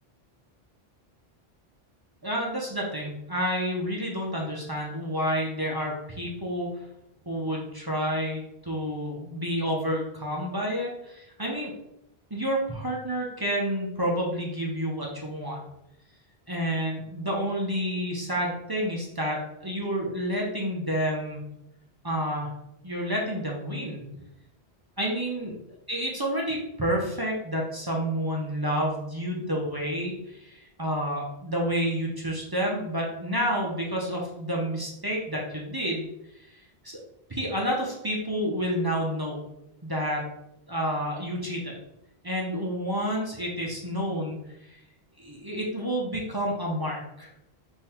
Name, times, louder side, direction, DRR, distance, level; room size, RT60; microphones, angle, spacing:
voice 1, 2.2-6.7 7.3-11.7 12.3-15.6 16.5-21.5 22.0-22.5 22.8-24.0 25.0-25.6 25.9-36.1 36.8-37.0 37.3-39.4 39.8-40.3 40.7-41.7 42.2-44.4 44.7-44.8 45.2-47.3, equal, 25° right, -2 dB, 0.6 m, -29 dB
3.8 x 2.6 x 4.3 m, 0.83 s
omnidirectional pair, 1.0 m